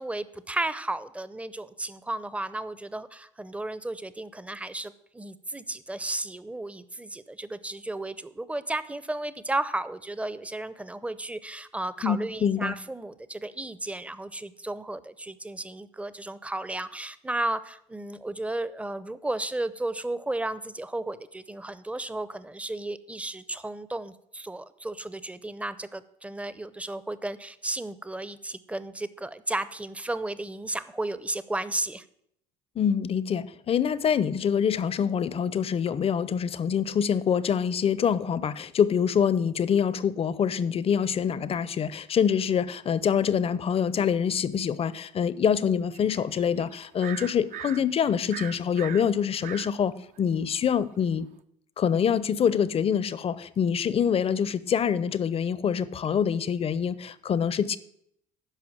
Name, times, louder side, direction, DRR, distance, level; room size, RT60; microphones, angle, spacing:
voice 1, 0.0-32.0, right 2 dB, 10° right, 0.6 m, -34 dB
voice 2, 12.0-12.7 32.8-51.3 51.8-57.8, left 7 dB, 40° left, 0.6 m, -25 dB
sound 1, 45.9-47.8 48.3-49.7 50.2-50.3, right 9 dB, 55° right, 0.7 m, -40 dB
9.9 x 5.9 x 7.2 m
supercardioid pair, 75°, 16 cm